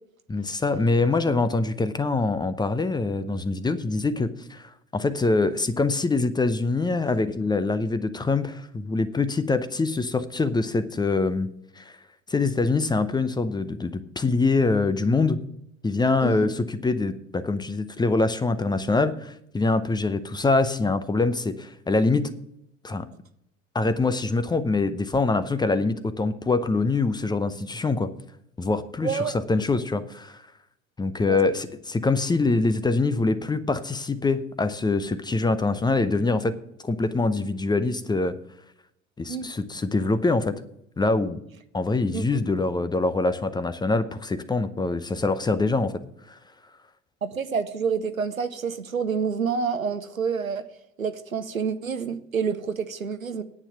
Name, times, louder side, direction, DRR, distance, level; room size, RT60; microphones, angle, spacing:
voice 1, 0.3-11.5 11.8-11.9 12.3-15.4 15.8-22.3 22.8-23.1 23.7-28.1 28.6-30.4 31.0-36.5 36.8-38.3 39.2-40.5 41.0-41.4 41.7-45.9 46.3-46.4, left 3 dB, 10° left, 0.7 m, -24 dB
voice 2, 29.0-29.4 31.2-31.4 39.3-39.5 42.1-42.4 47.2-50.6 51.0-53.4, right 6 dB, 85° right, 0.7 m, -28 dB
9.9 x 8.9 x 5.8 m
figure-of-eight pair, 70°, 40 cm